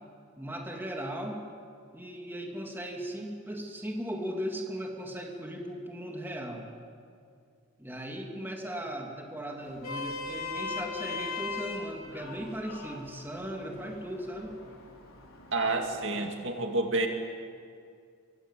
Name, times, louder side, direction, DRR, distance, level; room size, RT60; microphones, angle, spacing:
voice 1, 0.4-1.4 1.9-6.7 7.8-14.6, equal, 10° right, 0 dB, 3.0 m, -37 dB
Vehicle horn car horn honking, 9.6-16.0, left 4 dB, 85° left, 4.5 m, -40 dB
voice 2, 15.5-17.1, right 2 dB, 60° right, 3 dB, 2.3 m, -29 dB
25.0 x 24.0 x 8.4 m, 2.2 s
head